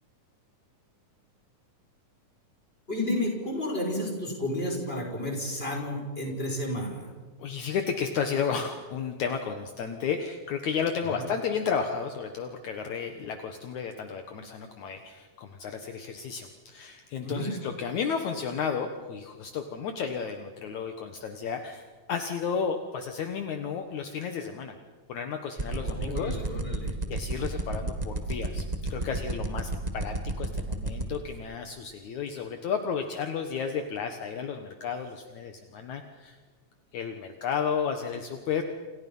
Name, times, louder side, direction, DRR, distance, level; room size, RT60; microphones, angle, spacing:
voice 1, 2.9-7.1 11.1-11.2 17.2-17.5 25.8-27.0, left 1 dB, 15° left, 1 dB, 5.9 m, -32 dB
voice 2, 7.4-24.7 25.1-26.4 27.1-28.6 28.9-36.4 36.9-38.6, left 6 dB, 65° left, 6 dB, 2.7 m, -32 dB
sound 1, 25.6-31.2, right 2 dB, 20° right, 1.2 m, -30 dB
29.5 x 28.0 x 5.6 m, 1.4 s
omnidirectional pair, 3.7 m